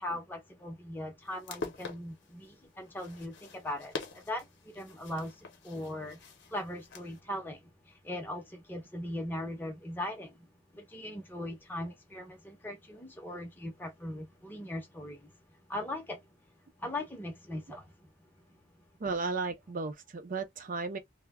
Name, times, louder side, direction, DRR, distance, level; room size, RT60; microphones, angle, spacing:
voice 1, 0.0-16.4 16.8-18.1 18.4-18.6, left 1 dB, 10° left, 0.5 m, -40 dB
sound 1, 1.2-7.2, left 4 dB, 60° left, 0.6 m, -45 dB
voice 2, 19.0-21.0, right 4 dB, 45° right, 0.5 m, -34 dB
2.2 x 2.0 x 3.4 m
head